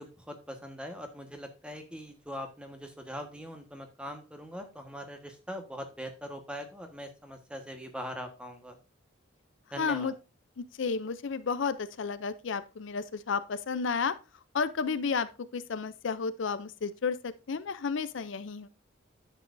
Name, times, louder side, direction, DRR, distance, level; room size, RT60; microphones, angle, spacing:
voice 1, 0.0-8.8 9.7-10.1, equal, 5° right, 1.2 m, -42 dB
voice 2, 9.8-10.1 10.6-14.2 14.5-18.7, left 5 dB, 65° left, 0.5 m, -32 dB
9.9 x 7.5 x 2.6 m
head